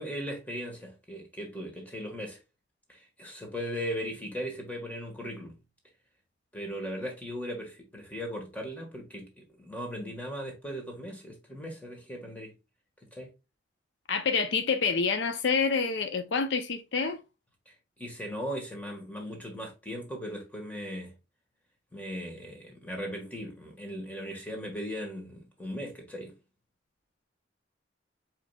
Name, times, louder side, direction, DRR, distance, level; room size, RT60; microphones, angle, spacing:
voice 1, 0.0-2.4 2.9-5.6 6.5-12.5 13.1-13.3 17.7-21.1 21.9-26.3, equal, 10° left, 1.4 m, -38 dB
voice 2, 14.1-17.2, left 5 dB, 70° left, 0.5 m, -27 dB
4.8 x 4.5 x 2.2 m
head